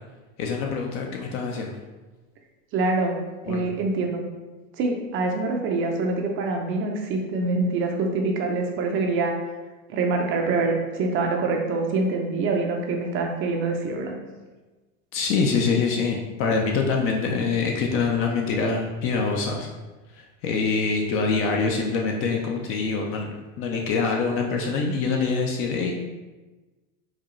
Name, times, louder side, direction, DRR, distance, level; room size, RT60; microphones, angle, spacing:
voice 1, 0.4-1.8 3.5-3.6 15.1-19.7 20.1-25.9, left 4 dB, 35° left, 1 dB, 0.4 m, -25 dB
voice 2, 2.7-4.2 4.8-9.3 9.9-14.1, right 3 dB, 30° right, 2 dB, 0.5 m, -25 dB
4.8 x 2.3 x 3.0 m, 1.2 s
hypercardioid pair, 120°, 42 cm